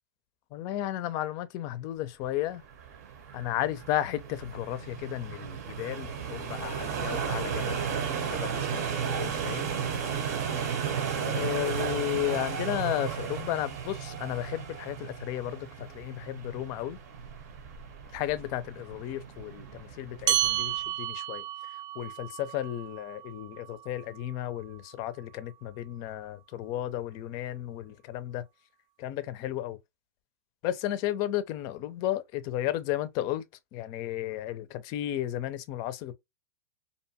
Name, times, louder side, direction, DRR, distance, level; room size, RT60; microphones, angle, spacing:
voice 1, 0.5-2.6 3.3-9.7 11.2-17.0 18.1-21.4 22.0-28.4 29.0-29.8 30.6-33.4 33.7-36.1, left 13 dB, 45° left, 0.4 m, -33 dB
sound 1, 2.5-20.8, right 7 dB, 65° right, 0.8 m, -34 dB
sound 2, 20.3-25.1, right 13 dB, 45° right, 0.3 m, -33 dB
2.6 x 2.2 x 2.7 m
hypercardioid pair, 125°, 9 cm